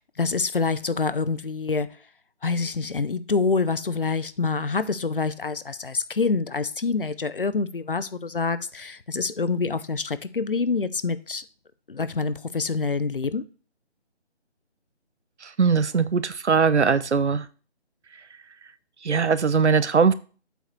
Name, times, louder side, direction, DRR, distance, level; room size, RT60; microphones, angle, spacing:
voice 1, 0.2-1.9 2.4-11.4 11.9-13.4, left 4 dB, 50° left, 0.6 m, -26 dB
voice 2, 15.6-17.4 19.0-20.1, right 5 dB, 75° right, 0.8 m, -20 dB
7.9 x 4.8 x 4.5 m
figure-of-eight pair, 170°, 34 cm